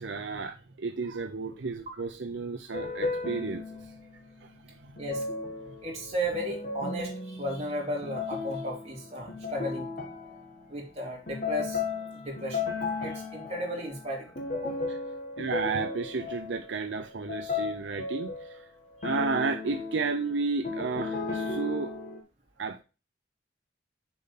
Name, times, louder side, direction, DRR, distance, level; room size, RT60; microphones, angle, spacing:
voice 1, 0.0-3.9 4.4-5.0 14.9-15.0 15.4-18.7 19.0-21.9 22.6-22.8, right 4 dB, 80° right, 0.7 m, -32 dB
sound 1, 2.7-4.1 5.0-10.8 11.3-18.6 19.0-22.2, left 4 dB, 50° left, 1.5 m, -35 dB
voice 2, 5.8-9.9 10.7-11.8 12.1-12.6 13.0-14.9, equal, 35° right, 3.1 m, -34 dB
6.9 x 5.4 x 4.1 m
head